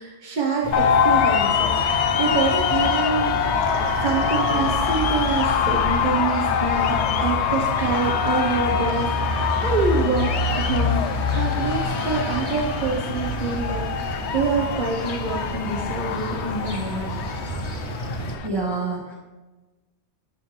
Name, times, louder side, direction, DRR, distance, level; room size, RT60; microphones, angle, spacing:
voice 1, 0.0-3.6 4.0-17.1, right 4 dB, 45° right, -1 dB, 1.0 m, -26 dB
sound 1, 0.6-18.3, left 1 dB, 45° left, 1.3 m, -29 dB
sound 2, 0.7-18.5, left 7 dB, 80° left, 0.9 m, -25 dB
voice 2, 18.4-19.1, right 3 dB, 25° right, -4 dB, 1.0 m, -27 dB
10.5 x 6.2 x 3.3 m, 1.2 s
omnidirectional pair, 1.2 m